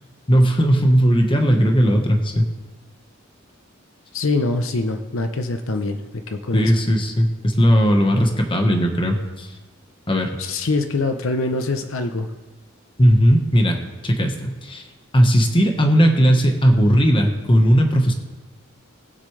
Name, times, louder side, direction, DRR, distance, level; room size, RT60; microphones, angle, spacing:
voice 1, 0.3-2.4 6.5-9.5 10.1-10.3 13.0-14.8 15.1-18.1, equal, 25° left, 3 dB, 1.2 m, -17 dB
voice 2, 4.1-6.7 10.4-12.3, left 3 dB, 80° left, 6 dB, 0.8 m, -24 dB
20.5 x 7.6 x 3.3 m, 1.2 s
head